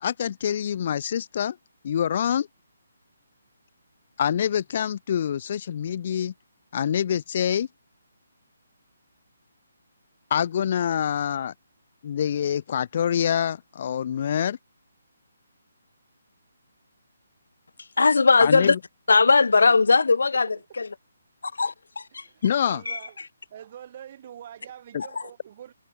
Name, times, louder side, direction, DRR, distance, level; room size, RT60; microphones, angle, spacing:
voice 1, 0.0-1.6 1.8-2.5 4.2-6.3 6.7-7.7 10.3-11.5 12.0-14.6 18.4-18.8 22.4-22.8 24.9-25.0, left 9 dB, 35° left, 1.0 m, -25 dB
voice 2, 18.0-18.7 19.1-20.9 21.4-22.3 22.9-23.0, left 4 dB, 80° left, 1.1 m, -19 dB
voice 3, 22.1-23.2 23.5-25.7, right 10 dB, 30° right, 2.4 m, -45 dB
hypercardioid pair, 170°, 0 cm